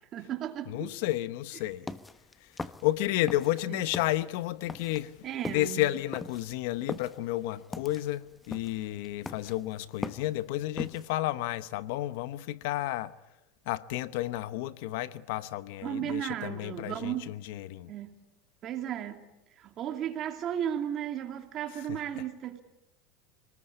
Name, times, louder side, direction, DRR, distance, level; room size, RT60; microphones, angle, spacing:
voice 1, 0.1-0.9 3.7-3.8 5.2-5.9 15.8-17.3 17.9-18.1 18.6-19.2 19.6-22.6, right 10 dB, 40° right, 2.6 m, -34 dB
voice 2, 0.7-1.9 2.4-13.1 13.6-17.9 21.9-22.2, left 16 dB, 75° left, 1.0 m, -32 dB
sound 1, 1.8-3.6 3.9-11.1, left 3 dB, 10° left, 0.9 m, -40 dB
26.5 x 19.5 x 8.6 m
supercardioid pair, 140°, 0 cm